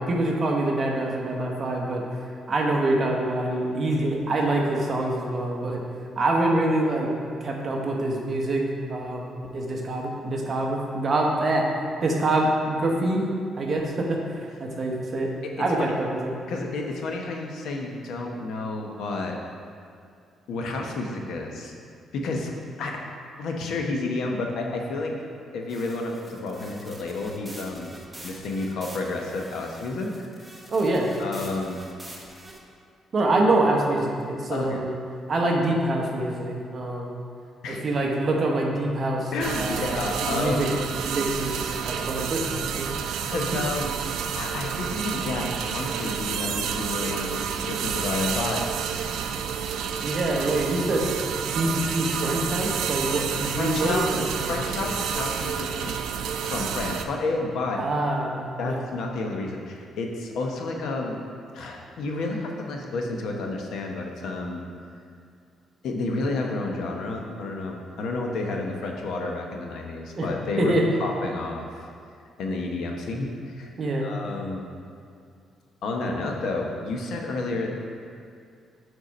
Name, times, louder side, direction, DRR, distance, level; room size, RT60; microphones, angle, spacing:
voice 1, 0.0-2.0 2.5-5.8 6.2-7.1 7.4-8.6 8.9-11.6 12.0-13.2 13.5-15.3 15.6-16.3 30.7-31.1 33.1-34.9 35.3-37.1 37.7-40.7 41.0-42.9 50.0-51.0 51.5-54.5 57.8-58.8 70.2-70.3 70.6-70.8 73.8-74.1, right 2 dB, 35° right, 0 dB, 0.9 m, -25 dB
voice 2, 15.4-15.9 16.5-19.4 20.5-21.7 22.1-22.5 22.8-23.0 23.4-25.2 25.5-27.9 28.2-30.1 30.4-30.5 31.2-31.8 34.5-34.8 37.6-37.8 39.3-40.7 43.3-43.9 44.4-48.6 53.6-54.2 54.5-56.0 56.4-57.8 58.6-61.2 61.5-64.6 65.8-71.8 72.4-73.7 74.0-74.7 75.8-77.7, left 3 dB, 70° left, 1 dB, 0.9 m, -30 dB
sound 1, 25.7-32.6, right 1 dB, 5° right, 0.8 m, -45 dB
sound 2, 39.4-57.0, right 7 dB, 90° right, 0.4 m, -29 dB
6.6 x 4.6 x 5.2 m, 2.3 s
cardioid pair, 155°, 0 cm